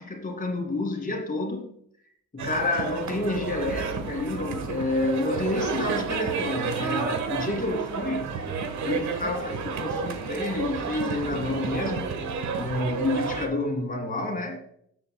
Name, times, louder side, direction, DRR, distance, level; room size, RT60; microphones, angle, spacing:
voice 1, 0.0-1.7 2.3-8.4 8.8-12.2 12.6-14.6, left 2 dB, 30° left, 3 dB, 2.4 m, -29 dB
sound 1, 2.4-13.5, right 5 dB, 70° right, 1.4 m, -31 dB
16.0 x 7.7 x 2.3 m, 0.69 s
cardioid pair, 90°, 30 cm